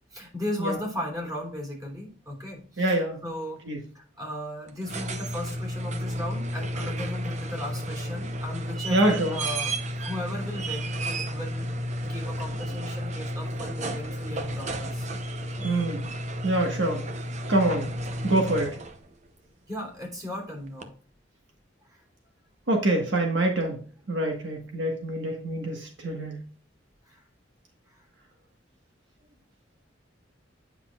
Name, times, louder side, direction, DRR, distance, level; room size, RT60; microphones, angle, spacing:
voice 1, 0.1-3.6 3.9-11.7 12.0-15.1 15.4-15.7 19.7-20.9 21.8-22.0 27.0-27.2 27.9-28.0, left 1 dB, 20° right, -1 dB, 3.2 m, -36 dB
voice 2, 2.8-3.2 3.7-3.8 8.9-9.4 15.6-16.0 16.4-17.0 17.5-17.9 18.2-18.8 22.7-23.8 24.1-26.4, right 1 dB, 75° right, 2 dB, 1.5 m, -25 dB
sound 1, 4.7-19.1 20.8-20.9, right 1 dB, 40° right, 0.8 m, -32 dB
9.5 x 5.8 x 2.4 m, 0.42 s
head